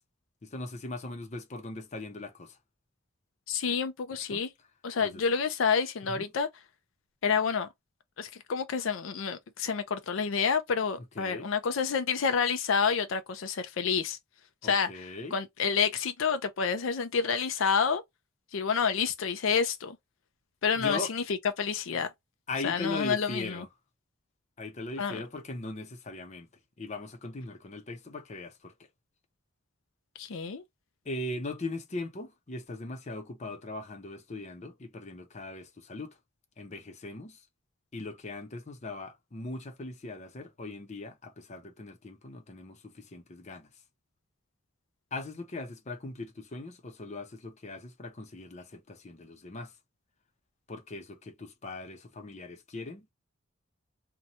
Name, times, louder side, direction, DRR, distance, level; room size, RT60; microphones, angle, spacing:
voice 1, 0.4-2.6 4.3-4.4 5.0-5.2 6.1-6.3 11.2-11.5 14.6-15.4 20.8-21.1 22.5-23.7 24.6-26.5 26.8-28.7 31.0-36.2 36.6-37.4 37.9-43.7 45.1-49.7 50.7-53.1, left 2 dB, 35° left, 0.6 m, -39 dB
voice 2, 3.5-4.5 4.8-6.5 7.2-7.7 8.2-14.2 14.6-14.9 15.3-18.0 18.5-20.0 20.6-21.2 21.6-22.1 22.6-23.6 25.0-25.2 30.2-30.6, left 6 dB, 75° left, 0.5 m, -28 dB
2.7 x 2.2 x 2.7 m
head